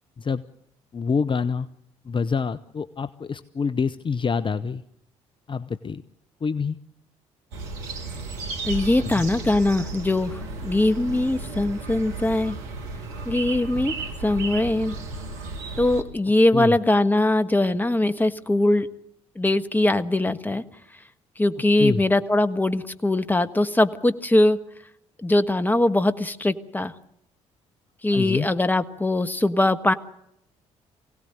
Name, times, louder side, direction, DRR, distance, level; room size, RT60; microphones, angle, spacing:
voice 1, 0.9-1.7 2.1-4.8 5.5-6.0 6.4-6.8 9.0-9.2 16.5-16.8 21.8-22.0 28.1-28.5, left 5 dB, 30° left, 13 dB, 0.8 m, -26 dB
sound 1, 7.5-16.0, right 3 dB, 75° right, 2.0 m, -34 dB
voice 2, 8.6-12.6 13.2-13.9 14.2-15.0 15.8-18.9 19.3-20.6 21.4-24.6 25.2-26.9 28.0-29.9, left 1 dB, 10° left, 10 dB, 1.4 m, -21 dB
24.5 x 17.5 x 7.9 m, 0.78 s
hypercardioid pair, 50°, 16 cm